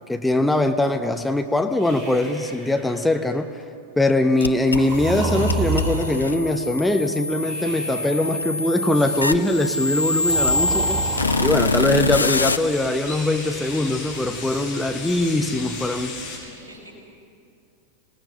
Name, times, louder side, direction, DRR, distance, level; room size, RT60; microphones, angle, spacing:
voice 1, 0.1-3.5 4.0-11.0 11.4-16.2, left 1 dB, 5° left, 6 dB, 0.9 m, -22 dB
Breathing, 1.8-3.3 4.7-6.4 7.4-8.4 10.2-11.7 13.0-14.2, right 2 dB, 25° right, 5.2 m, -30 dB
sound 1, 4.4-12.6, left 2 dB, 80° left, 0.6 m, -25 dB
sound 2, 8.9-16.4, left 4 dB, 50° left, 6.3 m, -37 dB
voice 2, 16.4-16.9, equal, 65° right, 0 dB, 5.9 m, -45 dB
27.0 x 19.5 x 5.9 m, 2.5 s
figure-of-eight pair, 90°, 0 cm